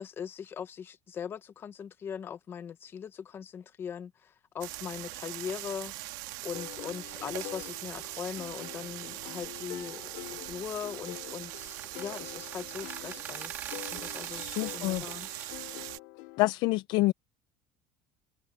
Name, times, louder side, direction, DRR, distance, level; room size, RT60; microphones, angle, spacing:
voice 1, 0.0-15.3, left 8 dB, 20° left, 0.8 m, -40 dB
sound 1, 4.6-16.0, right 21 dB, 85° right, 1.6 m, -41 dB
sound 2, 6.5-16.5, left 23 dB, 75° left, 2.2 m, -46 dB
sound 3, 11.4-15.5, right 6 dB, 20° right, 2.6 m, -45 dB
voice 2, 14.3-15.0 15.3-15.5 16.4-17.1, left 20 dB, 45° left, 0.4 m, -28 dB
cardioid pair, 180°, 10 cm